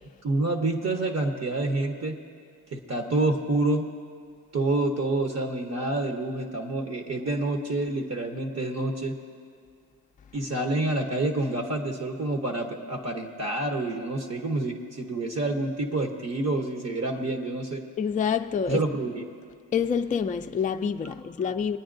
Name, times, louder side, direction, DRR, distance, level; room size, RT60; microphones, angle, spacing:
voice 1, 0.2-2.2 2.7-3.9 4.5-9.1 10.3-17.8 18.7-19.2, right 2 dB, 45° right, 1.0 m, -28 dB
voice 2, 18.0-18.8 19.7-21.8, left 7 dB, 25° left, 0.3 m, -27 dB
25.0 x 9.4 x 2.6 m
cardioid pair, 80°, 36 cm